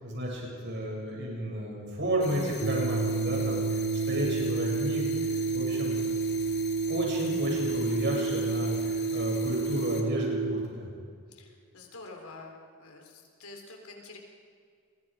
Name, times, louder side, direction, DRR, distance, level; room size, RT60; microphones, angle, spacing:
voice 1, 0.0-6.0 6.9-10.9, equal, 55° right, -2 dB, 7.9 m, -32 dB
sound 1, 2.2-10.0, left 8 dB, 50° left, 2.5 m, -45 dB
sound 2, 2.6-10.7, right 4 dB, 85° right, 0.6 m, -30 dB
voice 2, 11.3-14.2, left 2 dB, 85° left, 2 dB, 4.2 m, -47 dB
30.0 x 22.5 x 5.3 m, 2.1 s
head